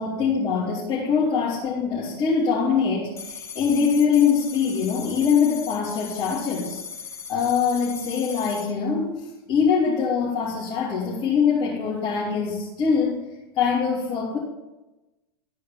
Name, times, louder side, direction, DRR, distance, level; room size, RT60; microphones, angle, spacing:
voice 1, 0.0-6.8 7.3-13.2 13.5-14.4, left 6 dB, 40° left, -6 dB, 2.7 m, -23 dB
sound 1, 3.2-8.7, left 6 dB, 20° left, 1.6 m, -38 dB
13.0 x 4.9 x 7.2 m, 1.0 s
figure-of-eight pair, 90°, 13 cm